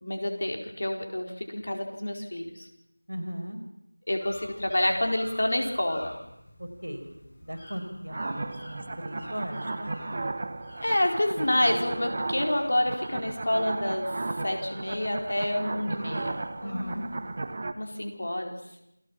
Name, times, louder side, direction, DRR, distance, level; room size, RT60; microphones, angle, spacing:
voice 1, 0.0-2.7 4.1-6.1 10.8-14.1 14.4-17.0 17.7-18.5, left 1 dB, 45° left, 3 dB, 4.4 m, -28 dB
voice 2, 3.1-3.6 6.6-7.1 7.4-10.0 16.6-17.1, equal, 75° right, 7 dB, 5.3 m, -37 dB
sound 1, 4.2-17.6, left 1 dB, 20° left, 6.2 m, -49 dB
sound 2, 8.1-17.7, right 2 dB, 25° right, 1.3 m, -35 dB
28.5 x 19.0 x 7.3 m, 0.83 s
figure-of-eight pair, 170°, 0 cm